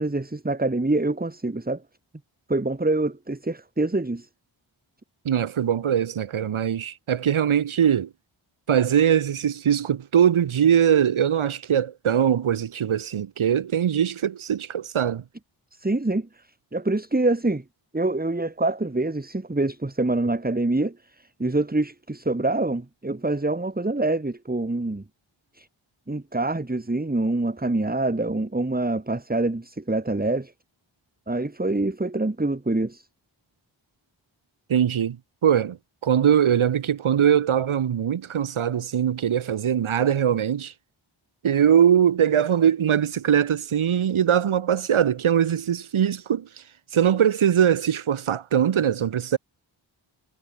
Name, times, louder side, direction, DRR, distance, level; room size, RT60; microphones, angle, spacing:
voice 1, 0.0-1.8 2.5-4.3 15.8-16.3 16.7-17.6 17.9-20.9 21.4-25.0 25.6-25.7 26.1-30.5 31.3-33.1, right 2 dB, 20° right, 1.9 m, -25 dB
voice 2, 5.2-8.1 8.7-15.2 34.7-35.2 35.4-35.8 36.0-40.7 41.4-46.5 46.9-49.4, right 9 dB, 90° right, 0.9 m, -21 dB
cardioid pair, 45°, 48 cm